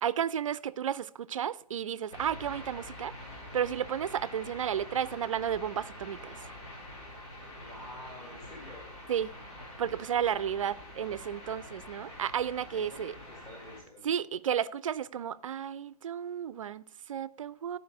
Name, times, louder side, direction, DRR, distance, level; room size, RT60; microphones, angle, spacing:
voice 1, 0.0-3.1 3.5-6.4 9.1-9.3 9.8-13.1 14.0-17.8, right 9 dB, 55° right, 0.5 m, -32 dB
sound 1, 2.1-13.8, left 1 dB, 45° left, 4.2 m, -46 dB
voice 2, 7.5-8.9 12.7-13.0 13.3-14.1, left 1 dB, 20° left, 2.3 m, -48 dB
12.5 x 5.0 x 4.9 m
figure-of-eight pair, 130°, 20 cm